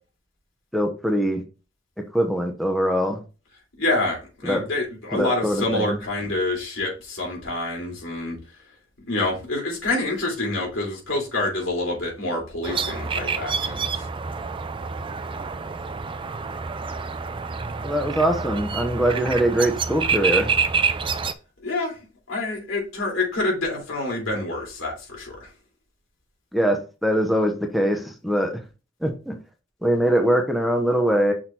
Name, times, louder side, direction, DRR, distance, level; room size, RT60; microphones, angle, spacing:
voice 1, 0.7-1.4 2.1-3.2 4.4-4.6 5.1-6.0 17.8-20.5 26.5-28.6 29.0-29.3 29.8-31.3, right 1 dB, ahead, 3 dB, 0.8 m, -22 dB
voice 2, 3.8-8.4 9.0-14.0 21.6-22.0 22.3-25.5, left 2 dB, 80° left, -1 dB, 3.3 m, -27 dB
sound 1, 12.6-21.3, right 5 dB, 25° right, 0.4 m, -27 dB
6.1 x 3.7 x 4.3 m, 0.32 s
head